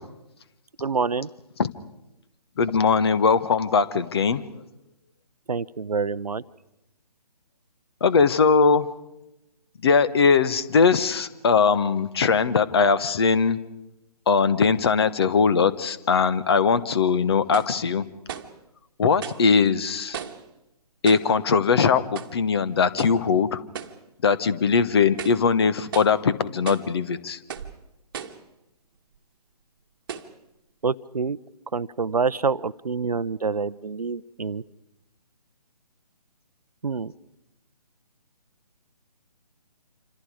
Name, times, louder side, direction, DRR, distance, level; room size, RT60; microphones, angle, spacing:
voice 1, 0.8-1.3 5.5-6.4 30.8-31.4 31.7-34.6 36.8-37.1, right 5 dB, 70° right, 18 dB, 0.8 m, -26 dB
voice 2, 2.6-4.4 8.0-8.9 9.8-13.6 14.3-18.0 19.0-20.2 21.0-23.6 24.2-27.4, left 5 dB, 40° left, 14 dB, 1.2 m, -20 dB
sound 1, 16.5-16.6 17.5-17.8 18.3-18.6 19.2-19.5 20.1-20.5 21.1-21.4 22.2-22.4 23.0-23.2 23.7-24.0 24.5-24.6 25.1-25.5 25.9-26.2 26.7-26.9 27.5-27.8 28.1-28.5 29.2-29.3 30.1-30.4, right 8 dB, 35° right, 1.5 m, -36 dB
27.0 x 26.5 x 4.9 m, 0.91 s
figure-of-eight pair, 145°, 20 cm